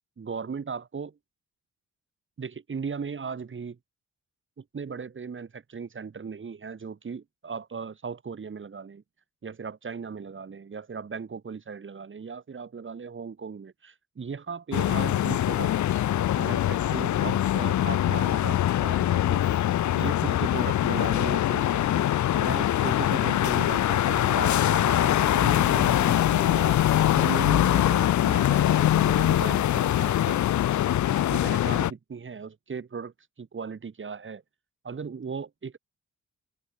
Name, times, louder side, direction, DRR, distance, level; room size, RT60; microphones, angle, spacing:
voice 1, 0.2-1.2 2.4-3.8 4.6-9.0 9.4-15.7 16.1-19.4 19.9-22.1 22.3-26.8 27.1-30.4 31.1-34.4 34.8-35.8, right 5 dB, 40° right, 3.0 m, -37 dB
sound 1, 14.7-31.9, left 12 dB, 75° left, 0.8 m, -23 dB
cardioid pair, 90°, 30 cm